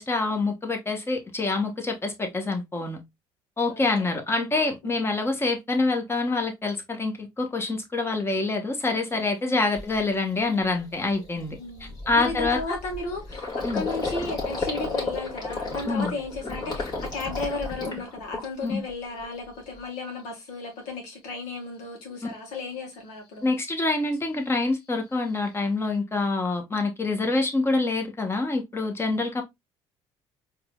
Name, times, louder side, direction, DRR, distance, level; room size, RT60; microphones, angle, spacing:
voice 1, 0.0-3.0 3.6-11.6 12.1-12.8 13.6-13.8 15.9-16.1 18.6-18.8 23.4-29.4, left 3 dB, 20° left, 1.1 m, -26 dB
voice 2, 3.7-4.1 4.8-5.0 9.4-9.8 11.6-23.4, left 3 dB, 85° left, 1.5 m, -34 dB
Gurgling, 9.2-9.3 9.7-10.0 10.4-10.5 10.8-18.8 19.2-19.8, left 3 dB, 40° left, 2.0 m, -33 dB
4.4 x 3.0 x 2.3 m
supercardioid pair, 85°, 11 cm